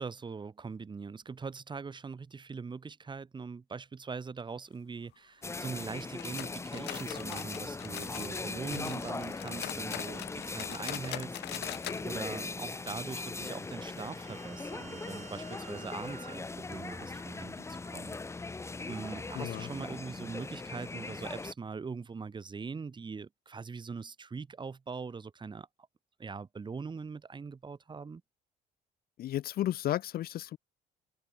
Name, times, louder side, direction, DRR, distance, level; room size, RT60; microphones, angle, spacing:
voice 1, 0.0-18.5 18.9-25.7 26.2-28.2, right 5 dB, 25° right, 3.3 m, -42 dB
sound 1, 5.4-21.5, left 3 dB, 15° left, 1.0 m, -40 dB
sound 2, 6.2-8.4 8.7-12.0 12.3-12.4 12.8-12.9 13.5-13.6, left 18 dB, 80° left, 2.1 m, -42 dB
sound 3, 13.4-17.9, right 8 dB, 45° right, 3.2 m, -54 dB
voice 2, 19.3-19.7 29.2-30.6, left 13 dB, 60° left, 1.1 m, -33 dB
cardioid pair, 110°, 17 cm